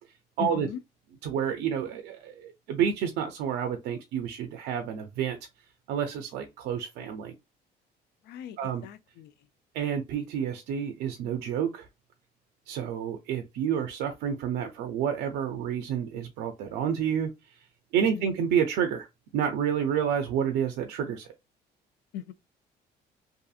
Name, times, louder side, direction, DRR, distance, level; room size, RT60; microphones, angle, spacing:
voice 1, 0.4-0.8 8.2-9.3 18.0-18.3 22.1-22.3, left 10 dB, 75° left, 0.4 m, -39 dB
voice 2, 1.2-5.4 5.9-7.3 8.6-8.8 9.7-11.9 12.7-17.3 17.9-19.1 19.3-21.3, right 8 dB, 85° right, 0.5 m, -29 dB
2.7 x 2.5 x 2.3 m
cardioid pair, 110°, 17 cm